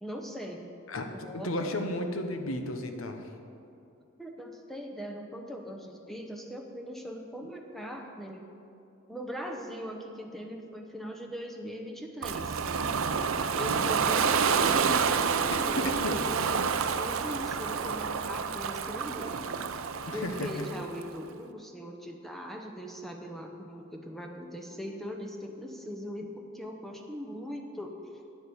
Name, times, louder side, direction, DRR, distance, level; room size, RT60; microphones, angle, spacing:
voice 1, 0.0-0.7 1.1-1.8 4.2-8.4 9.1-12.6 13.5-19.5 20.1-28.0, equal, ahead, 1 dB, 0.8 m, -40 dB
voice 2, 0.9-3.3 13.6-13.9 15.8-16.2 20.1-20.5, left 1 dB, 70° left, 6 dB, 1.0 m, -34 dB
Ocean, 12.2-21.1, right 6 dB, 70° right, 0.5 m, -29 dB
9.5 x 8.0 x 7.1 m, 2.6 s
head